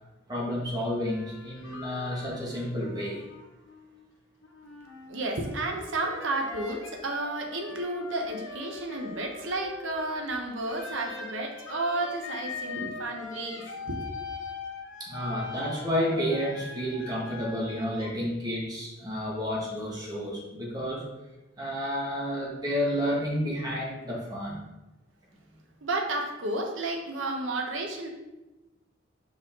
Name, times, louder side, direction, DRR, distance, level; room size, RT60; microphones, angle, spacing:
voice 1, 0.3-3.2 15.0-21.1 21.6-24.6, equal, 20° right, -4 dB, 1.7 m, -30 dB
sound 1, 1.1-4.1 4.4-10.2 10.7-18.1, left 4 dB, 85° left, 1.0 m, -42 dB
voice 2, 5.1-14.0 25.8-28.1, right 2 dB, 90° right, 2 dB, 1.0 m, -32 dB
5.4 x 5.1 x 3.7 m, 1.0 s
head